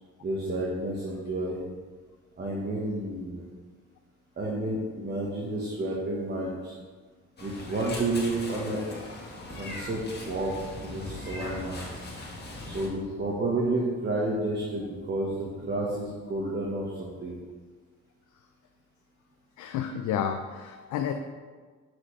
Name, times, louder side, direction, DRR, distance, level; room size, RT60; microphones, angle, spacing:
voice 1, 0.2-1.6 2.4-3.4 4.4-6.7 7.4-8.9 9.5-10.5 10.8-11.8 12.6-17.4, right 2 dB, 35° right, -3 dB, 1.3 m, -30 dB
Meow, 7.4-12.9, left 2 dB, 35° left, 1.7 m, -40 dB
Clapping, 11.4-13.7, right 1 dB, 55° right, 2.1 m, -49 dB
voice 2, 19.6-21.1, left 8 dB, 75° left, 6 dB, 0.5 m, -30 dB
7.5 x 6.2 x 3.2 m, 1.5 s
cardioid pair, 90°, 30 cm